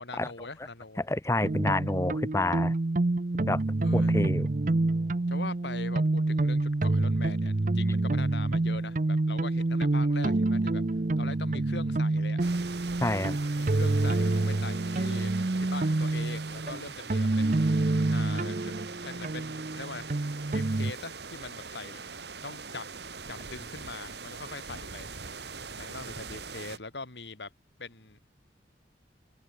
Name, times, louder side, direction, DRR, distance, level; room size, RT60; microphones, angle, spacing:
voice 1, 0.0-1.0 3.8-4.2 5.3-10.8 11.2-12.4 13.6-17.6 18.1-18.7 19.0-20.2 20.5-22.0 22.4-22.9 23.3-25.1 25.8-27.5 27.8-28.3, left 3 dB, 75° left, 2.5 m, -42 dB
voice 2, 1.0-2.7 3.5-3.6 3.9-4.5 13.0-13.4, left 2 dB, 15° left, 0.6 m, -28 dB
sound 1, 1.4-20.9, right 2 dB, 45° right, 0.6 m, -27 dB
sound 2, 12.4-26.8, right 5 dB, 70° right, 3.3 m, -42 dB
head